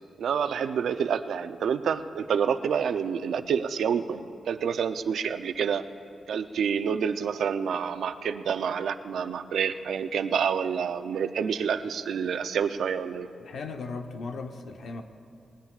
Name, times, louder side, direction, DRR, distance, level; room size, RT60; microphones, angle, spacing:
voice 1, 0.2-5.9 6.3-13.3, right 7 dB, 90° right, 10 dB, 0.5 m, -28 dB
voice 2, 13.4-15.0, left 4 dB, 65° left, 5 dB, 0.9 m, -37 dB
19.5 x 19.5 x 2.4 m, 2.6 s
wide cardioid pair, 145°, 0 cm